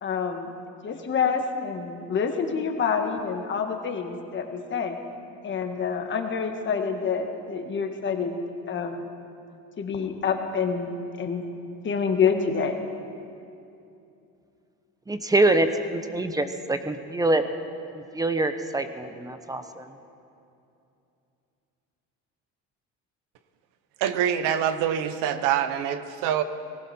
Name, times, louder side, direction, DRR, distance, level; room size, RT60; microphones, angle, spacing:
voice 1, 0.0-0.5 0.8-5.0 5.4-8.4 8.7-9.0 9.8-10.9 11.2-11.4 11.8-12.7, left 6 dB, 40° left, 5 dB, 1.6 m, -27 dB
voice 2, 15.1-17.5 17.9-19.9, right 2 dB, 10° right, 9 dB, 0.9 m, -25 dB
voice 3, 24.0-26.4, right 9 dB, 80° right, 11 dB, 1.0 m, -25 dB
19.0 x 16.0 x 4.4 m, 2.7 s
cardioid pair, 120°, 31 cm